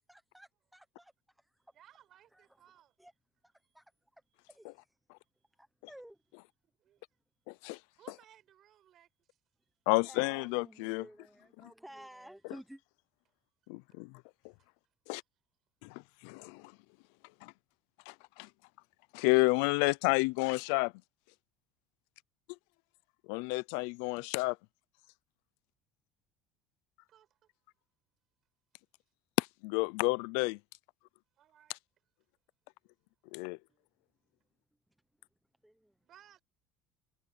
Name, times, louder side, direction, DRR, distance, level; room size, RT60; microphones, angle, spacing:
voice 1, 0.0-1.6 2.3-2.4 3.0-3.1 3.4-4.2 4.5-4.9 5.6-6.2 10.0-12.8 35.6-36.0, right 1 dB, ahead, 1.1 m, -54 dB
voice 2, 1.6-3.0 3.6-3.8 4.3-4.7 5.2-5.6 6.8-7.0 7.8-9.8 13.2-13.6 14.1-14.7 15.1-15.3 16.0-16.5 27.1-27.5 31.4-31.7 33.3-33.4 33.7-33.8 36.0-36.4, right 11 dB, 40° right, 4.9 m, -64 dB
voice 3, 9.9-11.0 13.7-14.1 15.1-15.2 15.8-16.6 17.4-17.5 18.1-18.5 19.1-20.9 23.3-24.6 29.4-30.6 33.3-33.6, left 26 dB, 85° left, 0.4 m, -30 dB
cardioid pair, 165°, 0 cm